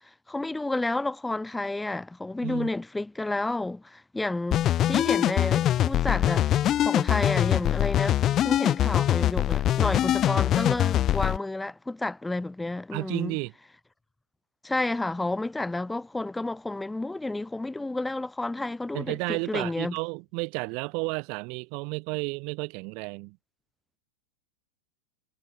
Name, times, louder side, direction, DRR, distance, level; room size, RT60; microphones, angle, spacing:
voice 1, 0.3-6.5 6.8-13.4 14.6-19.9, left 2 dB, 5° left, 4.7 m, -30 dB
sound 1, 4.5-11.4, left 12 dB, 30° left, 2.4 m, -23 dB
voice 2, 12.9-13.5 18.9-23.4, right 32 dB, 45° right, 6.8 m, -32 dB
figure-of-eight pair, 90°, 0 cm